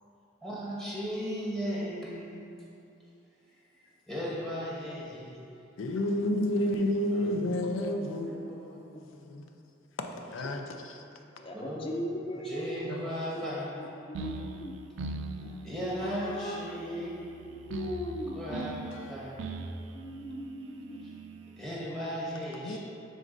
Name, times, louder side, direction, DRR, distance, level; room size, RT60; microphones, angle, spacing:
voice 1, 0.4-2.7 3.7-5.6 7.1-7.4 8.3-9.2 11.5-12.1 12.3-13.9 15.4-17.4 18.3-19.7 21.0-21.1 21.6-22.8, equal, ahead, 1.0 m, -37 dB
voice 2, 5.8-9.4 10.0-11.0 12.8-13.2 15.4-15.5 18.9-19.1 22.6-22.8, left 1 dB, 80° left, 0.5 m, -31 dB
voice 3, 11.4-12.8 13.4-13.5 13.8-14.8 16.0-18.8 19.9-21.0, equal, 25° left, 0.3 m, -39 dB
sound 1, 14.1-21.6, right 3 dB, 70° right, 0.4 m, -41 dB
9.4 x 3.9 x 2.6 m
head